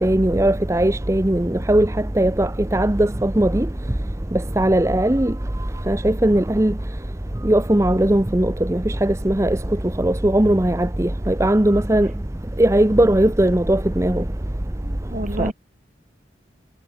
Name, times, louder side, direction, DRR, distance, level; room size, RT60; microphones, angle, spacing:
voice 1, 0.0-1.9 2.2-3.7 4.3-5.3 5.9-6.7 7.4-9.6 10.0-12.1 12.6-14.2 15.4-15.5, right 1 dB, 15° right, 0.8 m, -18 dB
voice 2, 14.8-15.5, right 1 dB, 45° right, 4.4 m, -30 dB
head